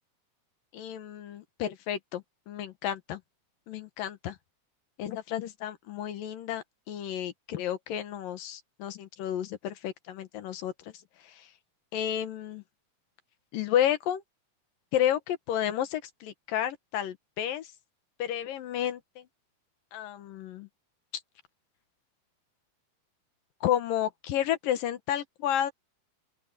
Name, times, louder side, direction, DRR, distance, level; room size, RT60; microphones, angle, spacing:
voice 1, 0.7-3.2 3.7-4.4 5.0-10.7 11.3-11.5 11.9-12.6 13.5-14.2 14.9-17.7 18.2-19.2 19.9-20.7 23.6-25.7, left 11 dB, 70° left, 2.9 m, -31 dB
open air
omnidirectional pair, 4.4 m